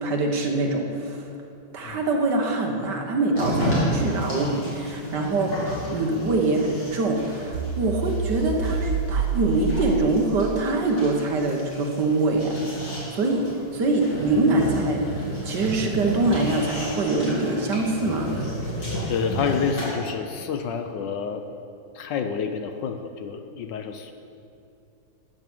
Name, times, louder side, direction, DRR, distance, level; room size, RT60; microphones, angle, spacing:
voice 1, 0.0-1.3 1.7-5.6 5.9-12.6 13.1-15.0 15.4-18.3, right 2 dB, 60° right, 2 dB, 1.7 m, -24 dB
sound 1, 3.3-19.9, equal, 50° left, 3.5 m, -32 dB
sound 2, 7.5-10.7, right 5 dB, 80° right, 1.5 m, -27 dB
voice 2, 19.1-21.4 21.9-24.1, left 6 dB, 70° left, 6 dB, 1.2 m, -28 dB
13.0 x 9.0 x 6.2 m, 2.5 s
omnidirectional pair, 2.2 m